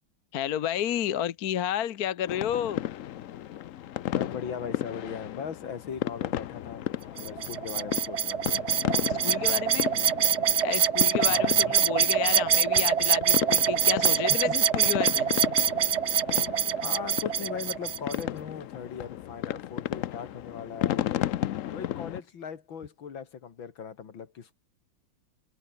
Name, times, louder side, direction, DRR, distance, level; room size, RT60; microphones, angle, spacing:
voice 1, 0.3-2.8 9.0-9.9 10.6-15.3, left 10 dB, 55° left, 1.3 m, -31 dB
sound 1, 2.3-22.2, left 12 dB, 90° left, 0.7 m, -34 dB
voice 2, 4.1-6.9 7.2-8.6 11.3-11.7 14.3-14.6 16.8-21.1 21.7-24.5, left 7 dB, 75° left, 2.7 m, -39 dB
sound 2, 7.2-18.2, right 8 dB, 50° right, 0.8 m, -25 dB
omnidirectional pair, 2.2 m